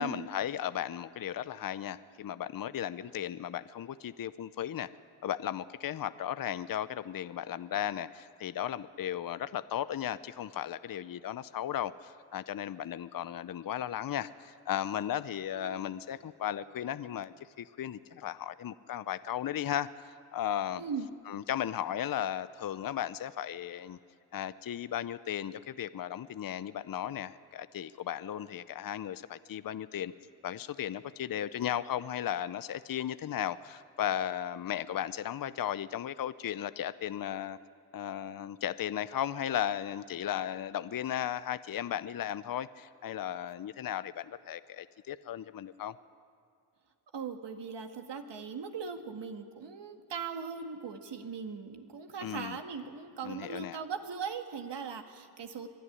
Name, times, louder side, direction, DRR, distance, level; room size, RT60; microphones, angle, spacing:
voice 1, 0.0-4.9 5.2-19.9 20.3-20.8 21.3-24.0 24.3-30.1 30.4-37.6 37.9-45.9 52.2-52.6 53.2-53.8, left 10 dB, 45° left, 15 dB, 0.7 m, -35 dB
voice 2, 15.5-15.9 20.8-21.1 47.1-55.7, right 6 dB, 60° right, 5 dB, 1.9 m, -39 dB
24.0 x 11.0 x 9.9 m, 2.5 s
supercardioid pair, 55°, 47 cm